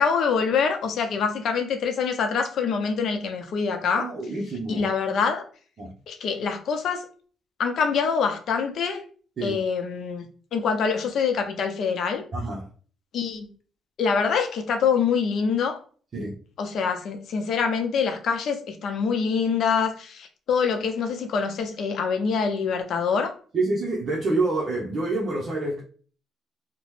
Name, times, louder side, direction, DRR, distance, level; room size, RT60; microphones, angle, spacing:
voice 1, 0.0-4.1 4.7-5.4 6.1-7.0 7.6-9.0 9.4-10.2 10.5-12.2 13.1-13.5 14.0-15.8 16.6-23.3, left 6 dB, 65° left, 0.6 m, -25 dB
voice 2, 3.8-4.9 5.8-5.9 9.4-9.6 12.3-12.7 16.1-16.4 23.5-25.8, right 2 dB, 50° right, 0.7 m, -27 dB
2.9 x 2.1 x 3.1 m
cardioid pair, 90°, 0 cm